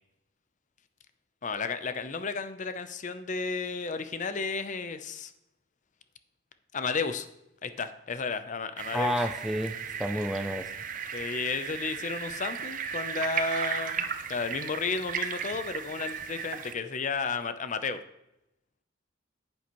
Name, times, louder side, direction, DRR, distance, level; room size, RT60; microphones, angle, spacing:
voice 1, 1.4-5.3 6.7-7.3 7.6-9.1 11.1-18.0, left 4 dB, 40° left, 10 dB, 0.6 m, -33 dB
sound 1, 8.8-16.7, right 7 dB, 45° right, 0.6 m, -35 dB
voice 2, 8.9-10.7, equal, ahead, 5 dB, 0.3 m, -30 dB
9.9 x 8.5 x 3.0 m, 0.87 s
head